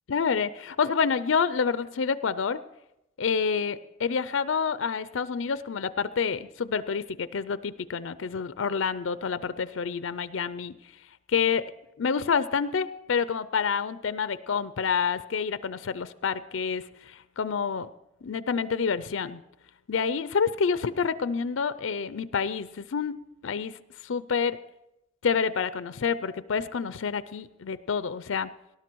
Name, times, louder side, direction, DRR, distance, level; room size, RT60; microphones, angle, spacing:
voice 1, 0.1-2.6 3.2-10.7 11.3-11.6 12.0-17.9 18.2-19.4 19.9-23.2 23.4-23.8 24.0-24.6 25.2-28.5, left 6 dB, 70° left, 15 dB, 0.5 m, -28 dB
18.5 x 11.5 x 4.6 m, 0.88 s
head